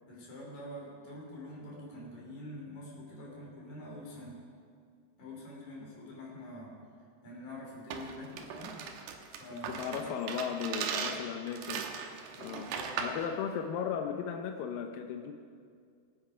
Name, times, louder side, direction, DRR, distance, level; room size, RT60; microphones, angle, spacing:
voice 1, 0.1-4.4 5.2-6.8 7.2-8.8 9.3-10.1 12.4-12.9, left 1 dB, 45° left, -3 dB, 4.2 m, -46 dB
sound 1, 7.9-13.3, right 6 dB, 75° right, 2.9 m, -38 dB
voice 2, 9.5-11.8 12.4-12.7 13.0-15.3, left 7 dB, 80° left, 4 dB, 2.0 m, -36 dB
21.5 x 8.4 x 4.9 m, 2.2 s
omnidirectional pair, 4.9 m